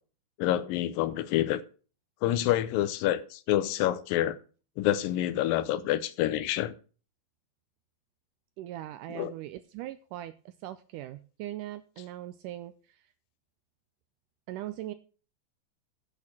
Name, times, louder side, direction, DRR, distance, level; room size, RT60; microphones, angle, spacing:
voice 1, 0.4-1.6 2.2-4.4 4.8-6.7 9.1-9.3, left 13 dB, 80° left, 15 dB, 2.3 m, -27 dB
voice 2, 8.6-13.0 14.5-14.9, right 13 dB, 80° right, 12 dB, 1.9 m, -40 dB
8.4 x 6.5 x 7.3 m, 0.37 s
omnidirectional pair, 4.2 m